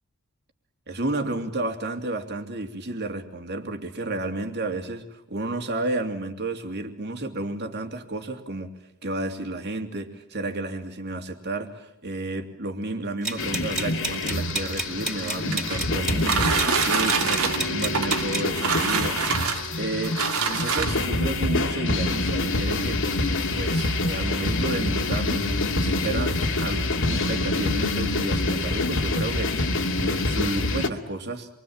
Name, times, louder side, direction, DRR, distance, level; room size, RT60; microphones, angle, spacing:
voice 1, 0.9-8.7 9.0-19.2 19.8-23.0 23.5-25.5 25.8-29.7 30.0-31.5, right 2 dB, 50° right, 5 dB, 2.9 m, -31 dB
sound 1, 13.2-18.5, right 2 dB, 5° right, 4.1 m, -31 dB
sound 2, 13.4-30.9, left 2 dB, 65° left, 2.4 m, -26 dB
sound 3, 15.0-21.2 22.1-22.2 22.6-22.7 23.0-23.4, right 5 dB, 85° right, 2.7 m, -26 dB
27.5 x 24.0 x 8.8 m, 0.78 s
head